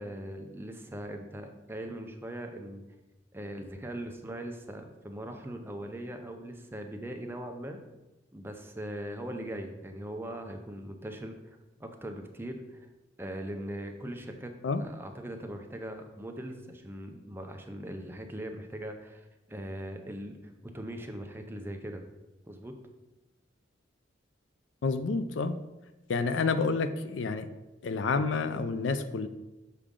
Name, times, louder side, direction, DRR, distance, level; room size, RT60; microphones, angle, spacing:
voice 1, 0.0-2.8 3.3-7.8 8.3-12.9 13.2-14.5 14.8-22.0 22.5-22.7, right 1 dB, 10° right, 5 dB, 0.5 m, -40 dB
voice 2, 24.8-25.5 26.1-27.5 27.8-29.3, left 4 dB, 90° left, 11 dB, 0.4 m, -29 dB
6.7 x 4.8 x 3.7 m, 1.0 s
head